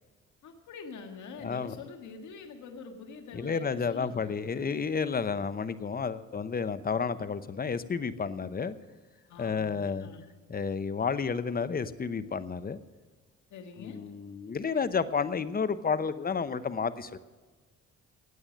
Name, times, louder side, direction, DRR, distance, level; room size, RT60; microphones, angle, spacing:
voice 1, 0.4-4.8 9.3-10.3 13.5-14.0, left 4 dB, 75° left, 4 dB, 1.7 m, -45 dB
voice 2, 1.4-1.8 3.3-8.8 9.4-10.1 10.5-12.8 13.8-17.2, left 5 dB, 30° left, 13 dB, 0.8 m, -31 dB
16.0 x 8.8 x 6.4 m, 1.4 s
cardioid pair, 90°, 30 cm